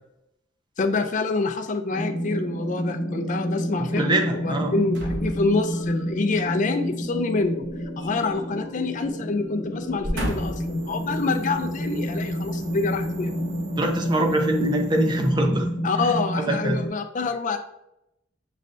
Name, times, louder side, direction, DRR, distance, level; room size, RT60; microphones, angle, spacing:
voice 1, 0.8-4.2 4.4-7.6 8.0-13.4 15.8-17.6, left 3 dB, 40° left, 7 dB, 0.4 m, -26 dB
sound 1, 1.9-16.9, equal, 60° left, 1.2 m, -29 dB
voice 2, 3.9-4.7 13.8-15.7 16.4-16.8, right 1 dB, 25° right, 3 dB, 0.5 m, -23 dB
sound 2, 4.9-6.0 7.6-8.7 9.0-9.2 9.8-10.8 11.4-11.5, equal, 60° right, 1.1 m, -33 dB
sound 3, 10.2-15.3, right 1 dB, 40° right, 1.3 m, -46 dB
6.4 x 3.2 x 2.6 m, 0.82 s
head